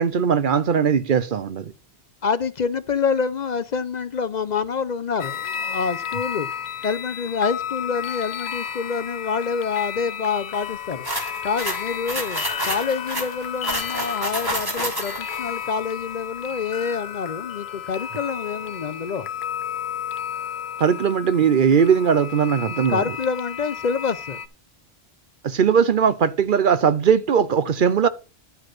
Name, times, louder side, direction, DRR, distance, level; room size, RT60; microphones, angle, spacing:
voice 1, 0.0-1.7 20.8-23.0 25.4-28.1, right 7 dB, 60° right, 0.8 m, -19 dB
voice 2, 2.2-6.5 6.8-11.1 11.4-19.3 22.9-24.4, left 5 dB, 50° left, 0.7 m, -27 dB
sound 1, 5.2-24.5, left 8 dB, 85° left, 1.0 m, -32 dB
sound 2, 11.0-15.4, right 1 dB, 20° right, 2.5 m, -29 dB
11.0 x 5.1 x 6.0 m
omnidirectional pair, 1.0 m